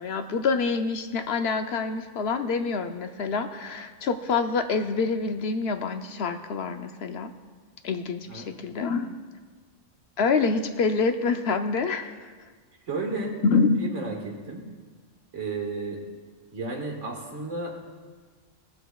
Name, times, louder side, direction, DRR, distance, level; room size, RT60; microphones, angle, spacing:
voice 1, 0.0-7.3 7.8-9.1 10.2-12.3 13.4-13.9, left 4 dB, 65° left, 7 dB, 0.8 m, -26 dB
voice 2, 12.8-13.4 13.8-14.6 15.3-16.0 16.5-17.8, right 3 dB, 80° right, 1 dB, 1.9 m, -33 dB
18.0 x 7.9 x 2.3 m, 1.5 s
omnidirectional pair, 1.3 m